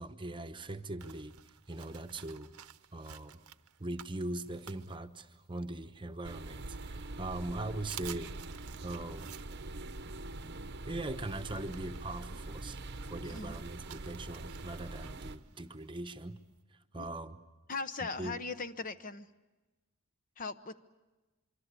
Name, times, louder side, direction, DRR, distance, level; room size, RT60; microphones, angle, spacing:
voice 1, 0.0-2.5 2.9-3.4 3.8-8.3 8.8-9.3 10.8-12.8 13.1-16.4 16.7-17.4 18.2-18.3, right 2 dB, 20° right, 9 dB, 1.0 m, -41 dB
sound 1, 1.0-5.6 6.1-7.0 7.4-7.5 7.8-16.6, right 11 dB, 80° right, 0.9 m, -53 dB
sound 2, 6.2-15.4, right 2 dB, 50° right, 0.9 m, -44 dB
voice 2, 17.7-19.3 20.4-20.8, left 4 dB, 35° left, 11 dB, 0.8 m, -39 dB
25.5 x 24.5 x 8.3 m, 1.2 s
head